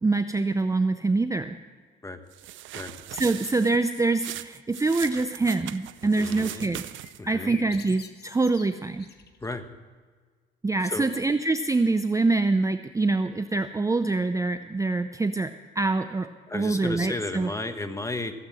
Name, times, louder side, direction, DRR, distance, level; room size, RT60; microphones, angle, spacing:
voice 1, 0.0-1.6 3.1-6.8 7.3-9.1 10.6-17.5, right 3 dB, 15° right, 9 dB, 0.5 m, -25 dB
sound 1, 2.3-7.3, right 13 dB, 75° right, 0.5 m, -40 dB
voice 2, 6.0-6.7 7.2-7.6 9.4-9.7 10.8-11.2 16.5-18.3, left 2 dB, 15° left, 8 dB, 1.2 m, -34 dB
Blackbird in the morning, 7.0-9.7, left 6 dB, 55° left, 1.2 m, -47 dB
15.5 x 8.0 x 7.6 m, 1.5 s
cardioid pair, 90°, 20 cm